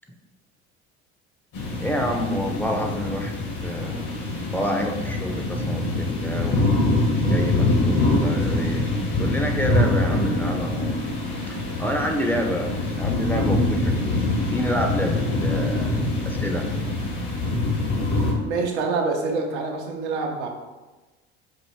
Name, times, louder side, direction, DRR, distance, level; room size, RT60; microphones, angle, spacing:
sound 1, 1.5-18.3, left 2 dB, 65° left, 1.2 m, -24 dB
voice 1, 1.8-4.1 4.5-6.8 7.3-8.9 9.2-11.2 11.5-12.7 13.0-16.0 16.3-16.6, equal, 5° left, 2 dB, 0.5 m, -28 dB
voice 2, 18.4-20.5, right 4 dB, 90° right, 1 dB, 0.7 m, -26 dB
4.6 x 2.6 x 3.1 m, 1.2 s
hypercardioid pair, 70°, 33 cm